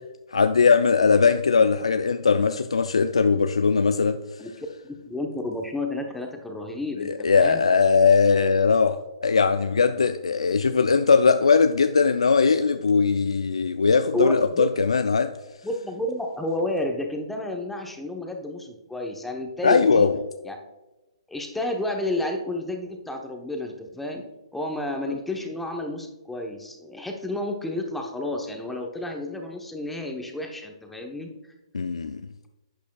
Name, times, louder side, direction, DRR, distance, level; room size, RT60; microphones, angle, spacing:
voice 1, 0.3-4.2 7.2-15.3 19.6-20.2 25.1-25.2 31.7-32.2, left 5 dB, 80° left, 0.4 m, -20 dB
voice 2, 4.4-7.6 14.1-14.7 15.6-20.1 20.4-20.6 21.3-24.2 24.5-31.5, left 1 dB, 5° left, 0.9 m, -31 dB
11.5 x 8.3 x 2.3 m
hypercardioid pair, 130°, 3 cm